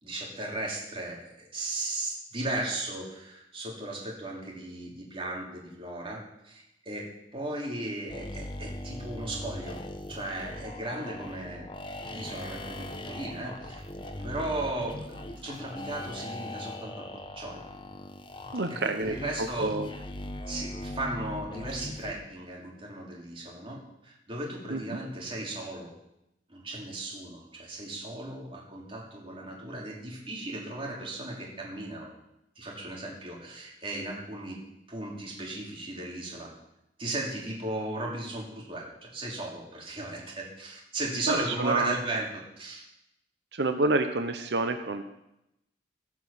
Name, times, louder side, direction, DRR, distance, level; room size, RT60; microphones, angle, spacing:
voice 1, 0.0-11.7 12.1-13.8 14.2-17.0 17.3-17.6 18.7-19.7 20.4-25.9 26.5-32.1 32.5-34.6 34.9-36.5 37.0-42.3 42.6-42.8, right 2 dB, 30° right, -3 dB, 3.2 m, -36 dB
sound 1, 8.1-22.1, left 1 dB, 30° left, 1.0 m, -40 dB
voice 2, 18.5-19.9 24.7-24.8 41.3-42.0 43.5-45.0, right 3 dB, 70° right, 7 dB, 0.9 m, -28 dB
16.5 x 6.1 x 7.1 m, 0.85 s
head